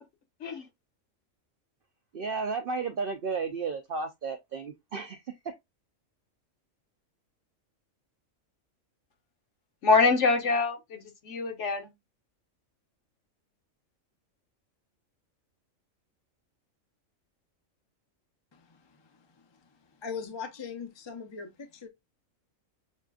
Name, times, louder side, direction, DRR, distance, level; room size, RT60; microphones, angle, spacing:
voice 1, 2.1-5.5, right 4 dB, 65° right, 0.5 m, -33 dB
voice 2, 9.8-11.9, left 4 dB, 60° left, 1.3 m, -25 dB
voice 3, 18.5-19.6 20.0-21.9, left 6 dB, 35° left, 0.4 m, -41 dB
6.4 x 2.5 x 2.3 m
omnidirectional pair, 1.4 m